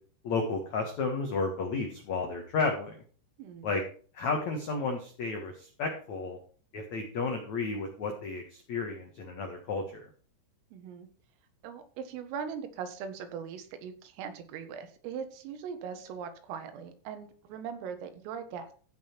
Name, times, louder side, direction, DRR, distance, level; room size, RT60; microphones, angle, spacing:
voice 1, 0.2-2.9 3.6-3.8 4.1-6.4 6.7-10.0, left 4 dB, 85° left, 3 dB, 1.5 m, -32 dB
voice 2, 3.4-3.8 10.7-11.1 11.6-18.7, right 7 dB, 85° right, 8 dB, 4.1 m, -40 dB
15.5 x 6.1 x 4.5 m, 0.42 s
omnidirectional pair, 5.8 m